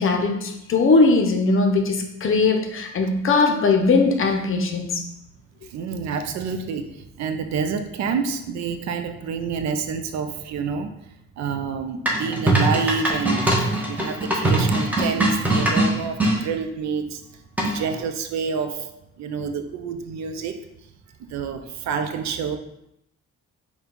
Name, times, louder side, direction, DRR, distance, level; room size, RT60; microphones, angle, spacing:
voice 1, 0.0-5.0, left 3 dB, 45° left, 4 dB, 0.6 m, -20 dB
voice 2, 5.6-11.0 11.4-20.6 21.2-22.6, right 6 dB, 65° right, 7 dB, 0.5 m, -28 dB
sound 1, 12.1-16.4 17.6-18.0, right 1 dB, 5° right, 0.9 m, -21 dB
4.4 x 2.3 x 3.7 m, 0.80 s
cardioid pair, 90°, 30 cm